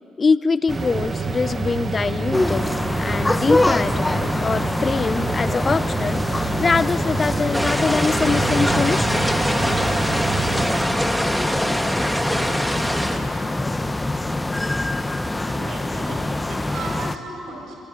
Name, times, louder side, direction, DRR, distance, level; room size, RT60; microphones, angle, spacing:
voice 1, 0.2-2.7 3.0-9.2, left 4 dB, 35° left, 16 dB, 0.9 m, -23 dB
sound 1, 0.7-10.8, right 3 dB, 35° right, 1.5 m, -27 dB
sound 2, 2.3-17.2, left 2 dB, 15° left, 1.2 m, -25 dB
sound 3, 7.5-13.2, equal, ahead, 2.7 m, -24 dB
voice 2, 15.4-17.8, right 2 dB, 70° right, 0 dB, 7.7 m, -35 dB
23.5 x 23.5 x 9.7 m, 3.0 s
hypercardioid pair, 60°, 0 cm